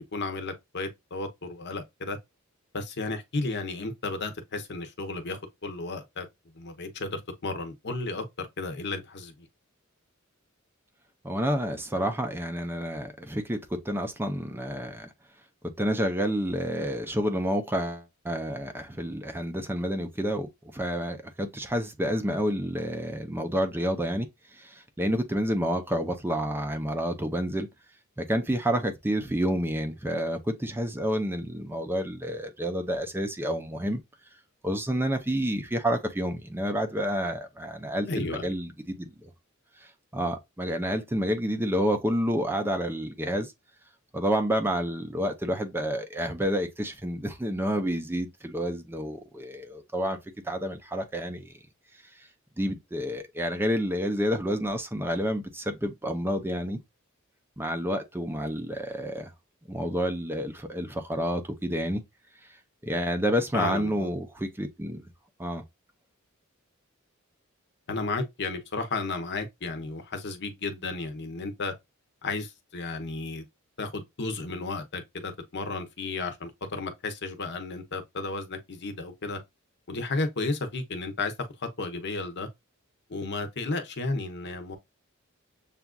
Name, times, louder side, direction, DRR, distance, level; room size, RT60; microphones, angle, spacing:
voice 1, 0.0-2.2 2.7-6.3 6.5-9.5 38.1-38.4 63.5-64.1 67.9-71.7 72.2-73.5 73.8-79.4 79.9-81.3 81.6-82.5 83.1-84.8, left 3 dB, 55° left, 0.8 m, -33 dB
voice 2, 11.2-13.6 13.8-15.1 15.8-24.3 24.5-27.7 28.2-34.0 34.6-39.3 40.1-43.5 44.1-50.2 50.4-51.5 52.6-56.8 57.6-59.3 59.7-62.0 62.8-65.0 65.4-65.6, equal, 10° right, 0.5 m, -29 dB
6.9 x 2.4 x 2.2 m
head